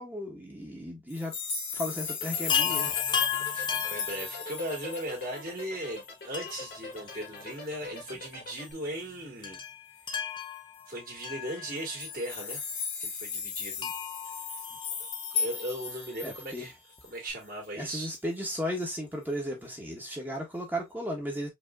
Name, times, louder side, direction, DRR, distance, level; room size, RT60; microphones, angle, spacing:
voice 1, 0.0-1.3 1.7-3.0 16.2-16.7 17.8-21.5, equal, 10° right, 1.2 m, -35 dB
sound 1, 1.1-5.6 6.0-6.1 6.5-6.6 6.9-7.4 8.5-8.7 10.4-10.5 10.8-10.9 11.7-16.6 17.1-17.2, left 6 dB, 75° left, 1.7 m, -35 dB
sound 2, 2.1-8.7, left 2 dB, 55° left, 1.3 m, -43 dB
Chime, 2.5-4.9 6.3-7.9 8.1-8.2 9.4-12.1 13.8-15.4 17.0-17.1 17.3-17.4, left 7 dB, 25° left, 0.6 m, -35 dB
voice 2, 3.5-9.6 10.9-12.6 13.0-13.9 15.3-16.7 17.0-18.1, right 1 dB, 50° right, 2.3 m, -38 dB
5.1 x 2.8 x 2.4 m
head